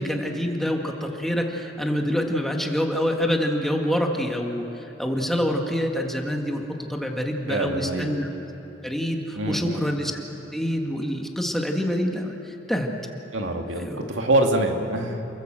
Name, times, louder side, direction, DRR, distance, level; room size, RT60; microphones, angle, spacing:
voice 1, 0.0-6.6 6.9-8.3 8.8-10.1 10.5-12.9 13.8-14.1, equal, ahead, 1 dB, 1.9 m, -26 dB
voice 2, 7.5-8.1 9.4-9.8 13.3-15.2, right 1 dB, 70° right, 3 dB, 2.4 m, -25 dB
29.5 x 22.0 x 7.7 m, 2.9 s
head